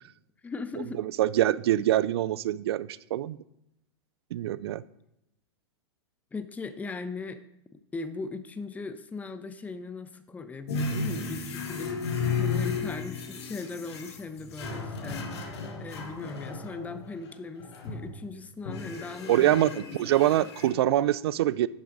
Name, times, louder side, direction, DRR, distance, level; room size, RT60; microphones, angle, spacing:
voice 1, 0.4-1.0 6.3-7.4 7.7-12.0 12.3-20.5, left 4 dB, 10° left, 11 dB, 0.6 m, -39 dB
voice 2, 1.0-3.4 4.3-4.8 19.3-21.7, right 13 dB, 65° right, 19 dB, 0.4 m, -25 dB
sound 1, 10.7-17.1 17.6-18.2 18.7-20.7, left 4 dB, 70° left, 1.8 m, -34 dB
10.5 x 6.9 x 3.9 m, 0.84 s
hypercardioid pair, 115°, 14 cm